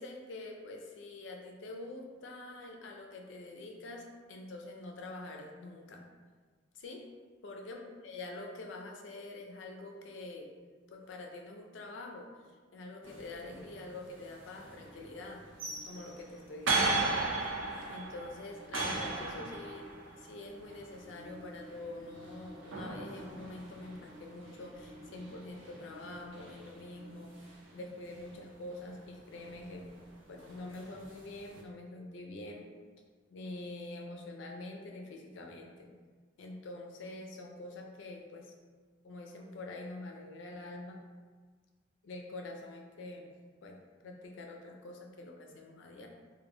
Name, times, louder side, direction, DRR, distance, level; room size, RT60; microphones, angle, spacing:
voice 1, 0.0-6.0 6.7-7.1 7.4-10.5 10.9-12.3 12.7-15.4 15.9-17.1 17.9-19.9 20.2-27.4 27.7-29.9 30.3-32.7 33.3-35.9 36.4-38.5 39.0-41.0 42.0-43.3 43.6-43.8 44.0-46.1, left 2 dB, 70° left, 1 dB, 0.4 m, -45 dB
sound 1, 13.0-31.6, right 3 dB, 85° right, 0.5 m, -39 dB
2.1 x 2.1 x 3.0 m, 1.5 s
head